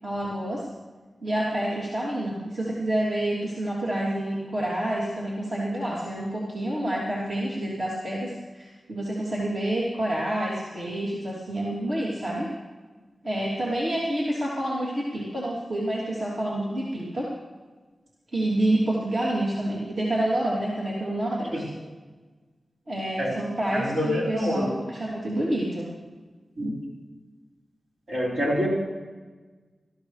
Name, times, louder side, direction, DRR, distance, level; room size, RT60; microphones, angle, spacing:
voice 1, 0.0-0.6 1.2-12.5 13.2-17.3 18.3-21.6 22.9-25.9, right 1 dB, 50° right, -6 dB, 3.0 m, -28 dB
voice 2, 23.7-24.7 26.6-26.8 28.1-28.7, equal, 70° right, -4 dB, 5.3 m, -26 dB
20.0 x 14.0 x 3.3 m, 1.3 s
wide cardioid pair, 110°, 0 cm